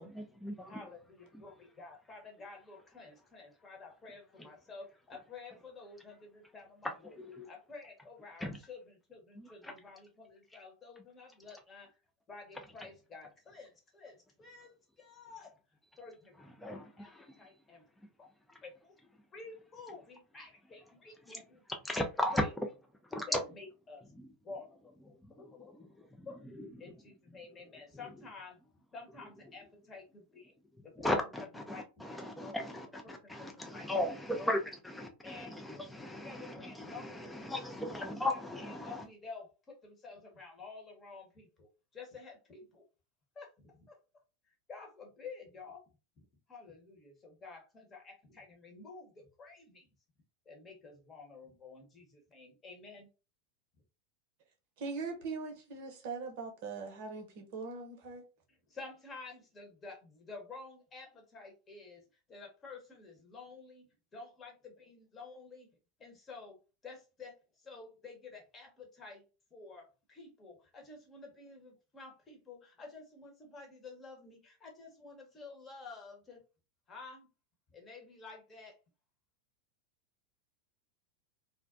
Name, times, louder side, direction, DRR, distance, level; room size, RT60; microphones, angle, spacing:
voice 1, 0.0-0.8 7.0-7.5 8.4-8.6 9.4-9.7 16.6-17.3 21.3-21.4 21.8-22.4 23.1-23.4 24.2-24.3 25.2-25.3 25.7-26.3 26.6-26.7 31.0-39.0, left 1 dB, 5° left, 0.4 m, -37 dB
voice 2, 0.7-7.2 7.4-12.0 12.3-15.6 16.0-16.4 16.6-17.1 17.4-17.9 18.2-18.3 18.6-18.9 19.3-21.6 22.3-22.5 23.3-24.1 24.4-25.8 26.2-26.4 26.8-28.6 28.9-30.5 30.8-32.7 33.0-33.9 34.4-34.5 35.2-35.5 36.0-37.5 38.3-42.8 43.3-44.0 44.7-45.8 46.2-46.3 46.5-49.9 50.4-53.1 58.7-63.9 64.1-65.7 66.0-69.2 69.5-76.4 76.9-77.3 77.7-78.8, left 4 dB, 25° left, 1.0 m, -51 dB
voice 3, 54.8-58.3, right 4 dB, 60° right, 0.7 m, -41 dB
2.4 x 2.1 x 2.5 m
hypercardioid pair, 90°, 0 cm